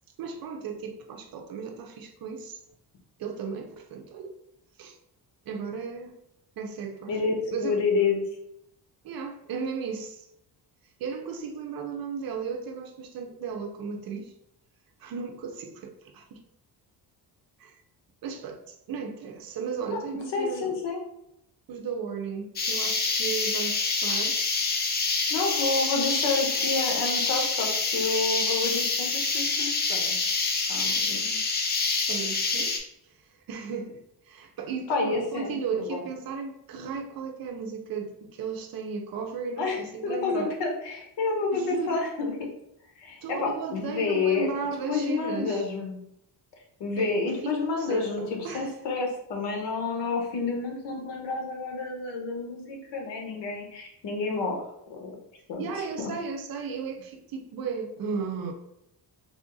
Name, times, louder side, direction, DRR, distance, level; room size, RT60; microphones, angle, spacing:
voice 1, 0.2-2.6 3.2-4.3 4.8-5.0 5.5-6.1 6.6-7.8 9.0-10.3 11.0-14.3 15.0-16.4 17.6-17.8 18.2-18.6 18.9-20.8 21.7-24.4 32.1-32.7 33.5-40.5 41.5-42.0 43.2-45.7 47.0-47.1 47.4-48.7 55.6-58.5, right 5 dB, 60° right, 4 dB, 0.6 m, -35 dB
voice 2, 7.6-8.2 19.9-20.0 20.3-21.0 25.3-30.3 30.7-31.4 34.9-36.0 39.6-42.5 43.0-44.5 44.9-46.0 46.8-54.6 54.9-55.1 55.5-56.1, left 4 dB, 85° left, 1 dB, 1.1 m, -29 dB
sound 1, 22.6-32.8, left 4 dB, 25° left, 0.4 m, -27 dB
3.5 x 2.5 x 3.8 m, 0.79 s
cardioid pair, 160°, 41 cm